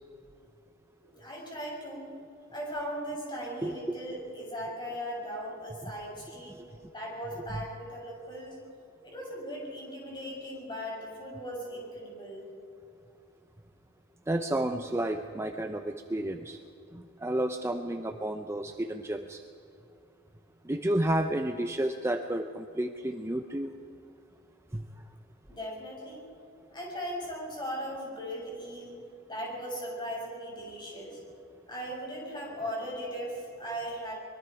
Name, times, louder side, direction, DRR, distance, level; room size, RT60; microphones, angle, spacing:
voice 1, 1.0-2.1 2.5-6.5 6.9-8.6 9.0-12.4 25.5-26.2 26.7-28.9 29.3-31.2 31.7-34.1, equal, 20° left, -3 dB, 6.6 m, -38 dB
voice 2, 14.3-16.6 16.9-19.4 20.6-23.7 24.7-24.8, right 1 dB, 15° right, 6 dB, 0.6 m, -31 dB
24.5 x 22.5 x 4.7 m, 2.6 s
head